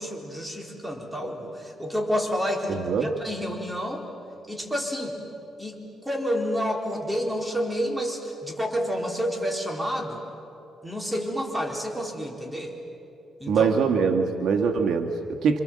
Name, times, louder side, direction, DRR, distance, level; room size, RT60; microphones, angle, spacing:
voice 1, 0.0-4.1 4.5-5.2 5.6-10.2 10.8-12.8 13.4-13.8, equal, 5° right, 0 dB, 4.2 m, -29 dB
voice 2, 2.7-3.1 13.5-15.6, right 6 dB, 70° right, 4 dB, 1.7 m, -23 dB
28.0 x 26.0 x 7.6 m, 2.8 s
cardioid pair, 105°, 0 cm